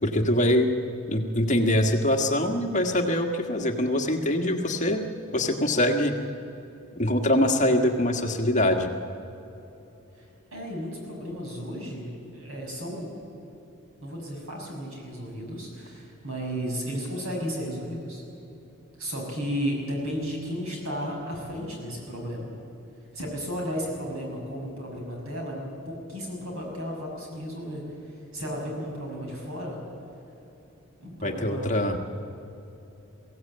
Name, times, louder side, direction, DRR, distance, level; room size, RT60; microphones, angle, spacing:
voice 1, 0.0-0.7 1.1-5.0 5.3-6.2 7.0-8.9 31.2-32.0, left 1 dB, 35° left, 3 dB, 1.6 m, -23 dB
voice 2, 10.5-13.1 14.0-18.2 19.0-22.5 23.1-29.8 31.0-31.8, equal, 75° right, 0 dB, 6.4 m, -34 dB
22.5 x 16.0 x 8.7 m, 2.9 s
head